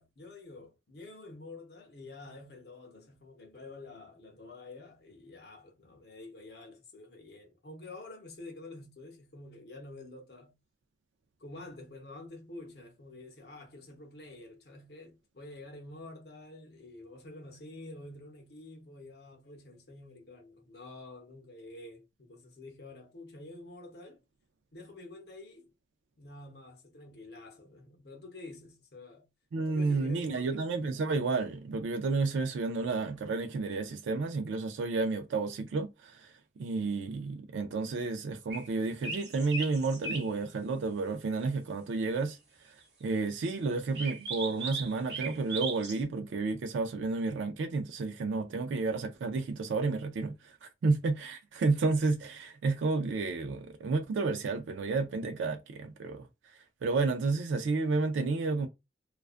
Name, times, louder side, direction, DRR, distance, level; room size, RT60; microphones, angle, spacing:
voice 1, 0.0-10.6 11.4-24.2 24.7-25.7 26.2-29.3 29.7-30.7, left 2 dB, 60° left, 0.6 m, -48 dB
voice 2, 29.5-36.3 36.6-42.4 43.0-56.3 56.8-58.7, right 3 dB, 90° right, 0.3 m, -31 dB
sound 1, 38.5-38.7 39.0-40.3 43.9-46.0, right 4 dB, 70° right, 0.9 m, -37 dB
2.4 x 2.2 x 2.4 m
head